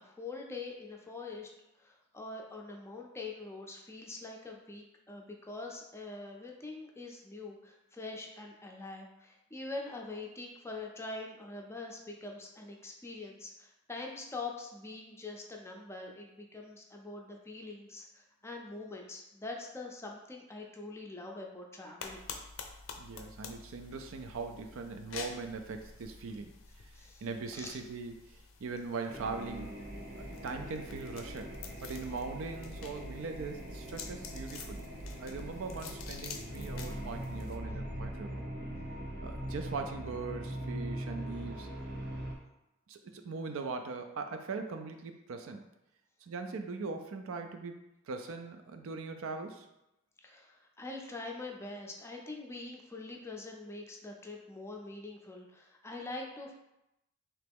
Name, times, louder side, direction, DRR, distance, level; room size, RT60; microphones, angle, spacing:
voice 1, 0.0-1.5 1.8-22.3 26.9-27.3 27.5-27.8 50.2-56.5, left 3 dB, 15° left, 0 dB, 0.4 m, -44 dB
sound 1, 22.0-37.6, left 5 dB, 75° left, 0.5 m, -49 dB
voice 2, 23.0-26.5 26.8-26.9 27.2-29.7 30.4-34.8 35.2-38.4 39.2-41.7 42.9-45.7 46.2-47.8 48.1-49.7, right 4 dB, 75° right, 6 dB, 0.4 m, -40 dB
sound 2, 29.1-42.3, right 1 dB, 50° right, 0.8 m, -41 dB
3.3 x 3.0 x 3.5 m, 0.89 s
head